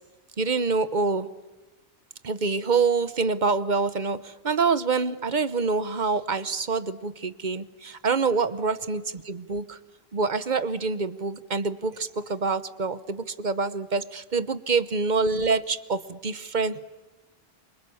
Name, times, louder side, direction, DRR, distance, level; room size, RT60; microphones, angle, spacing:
voice 1, 0.4-1.3 2.2-9.8 10.1-16.9, right 4 dB, 50° right, 14 dB, 1.1 m, -26 dB
28.5 x 25.0 x 7.1 m, 1.1 s
omnidirectional pair, 1.0 m